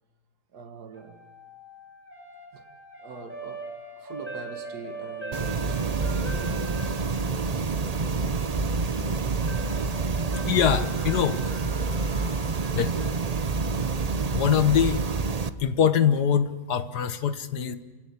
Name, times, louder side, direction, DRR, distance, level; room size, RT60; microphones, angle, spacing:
voice 1, 0.5-1.2 2.5-2.7 3.0-7.3 9.1-9.4, right 5 dB, 65° right, 2.0 m, -43 dB
sound 1, 0.9-15.0, right 3 dB, 5° right, 6.1 m, -42 dB
sound 2, 5.3-15.5, right 4 dB, 50° right, 0.4 m, -27 dB
voice 2, 10.5-11.4 12.7-12.9 14.3-15.0 15.6-17.8, left 8 dB, 70° left, 1.6 m, -23 dB
29.0 x 17.0 x 8.4 m
omnidirectional pair, 1.9 m